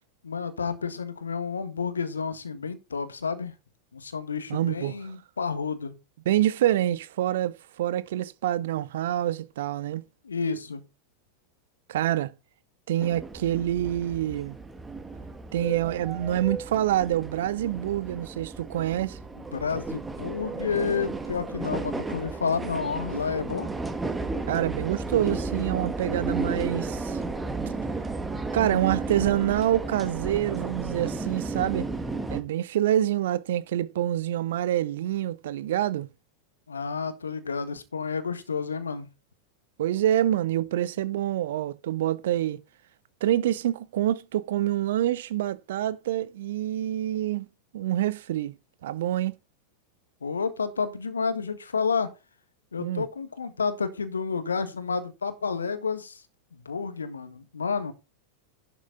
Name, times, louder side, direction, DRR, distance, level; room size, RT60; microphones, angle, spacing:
voice 1, 0.2-3.5 3.9-6.0 10.2-10.8 19.5-23.7 36.7-39.1 50.2-52.1 52.7-56.2 56.5-57.9, left 5 dB, 75° left, 1.6 m, -30 dB
voice 2, 4.5-4.9 6.3-10.0 11.9-12.3 12.9-14.6 15.5-19.2 24.5-27.2 28.5-31.9 32.3-36.1 39.8-42.6 43.2-47.5 47.7-48.6 48.8-49.3 52.8-53.0, right 12 dB, 55° right, 0.6 m, -26 dB
sound 1, 13.0-32.4, right 3 dB, 10° right, 1.4 m, -33 dB
11.5 x 6.9 x 3.8 m
figure-of-eight pair, 90°, 0 cm